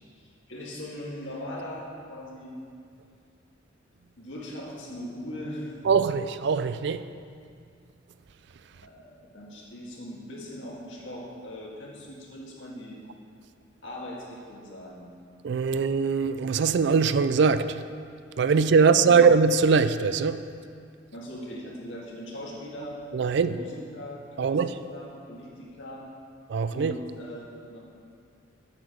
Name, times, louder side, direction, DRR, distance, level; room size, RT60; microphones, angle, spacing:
voice 1, 0.2-2.6 4.2-5.8 8.7-13.0 13.8-15.1 18.8-19.2 21.1-23.0 23.5-24.6 24.9-26.0 26.7-27.8, equal, 75° left, -4 dB, 2.0 m, -40 dB
voice 2, 5.9-7.1 15.4-17.8 18.4-20.4 23.1-23.5 24.4-24.7 26.5-26.9, right 5 dB, 65° right, 12 dB, 0.4 m, -22 dB
8.0 x 7.2 x 6.3 m, 2.3 s
head